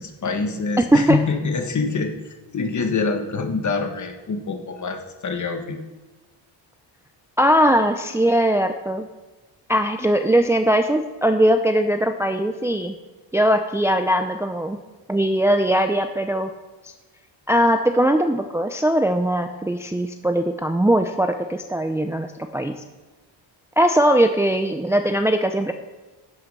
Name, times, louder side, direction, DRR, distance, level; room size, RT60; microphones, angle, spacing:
voice 1, 0.0-5.8, left 4 dB, 40° left, 5 dB, 1.5 m, -25 dB
voice 2, 7.4-9.1 9.7-13.0 13.3-14.8 15.1-16.5 16.8-16.9 17.5-22.3 22.5-22.7 23.8-25.7, right 1 dB, 5° right, 6 dB, 0.5 m, -20 dB
12.0 x 7.9 x 5.5 m, 1.2 s
cardioid pair, 115°, 44 cm